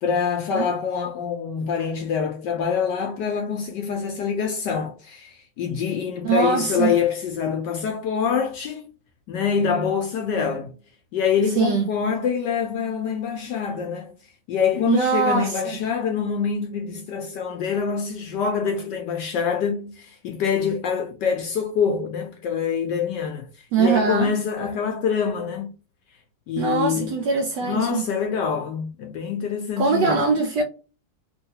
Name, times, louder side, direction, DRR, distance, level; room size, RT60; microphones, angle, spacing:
voice 1, 0.0-8.9 9.3-10.7 11.1-14.1 14.5-23.5 23.8-25.7 26.5-27.2 27.6-30.2, left 6 dB, 70° left, 1.1 m, -25 dB
voice 2, 6.2-6.9 11.6-11.9 14.9-15.8 23.7-24.3 26.6-28.0 29.8-30.6, right 5 dB, 75° right, 1.0 m, -22 dB
3.1 x 2.7 x 2.7 m
omnidirectional pair, 2.3 m